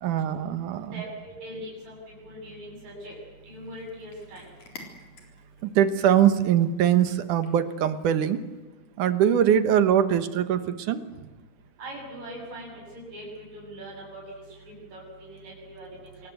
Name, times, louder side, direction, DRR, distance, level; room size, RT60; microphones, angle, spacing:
voice 1, 0.0-0.9 5.6-8.4 9.0-11.1, right 9 dB, 70° right, 11 dB, 2.7 m, -22 dB
voice 2, 0.9-4.6 11.8-16.3, right 1 dB, 55° right, -2 dB, 9.0 m, -41 dB
Cat, 3.4-8.6, left 3 dB, 65° left, 5.4 m, -52 dB
26.5 x 21.5 x 8.1 m, 1.2 s
omnidirectional pair, 3.7 m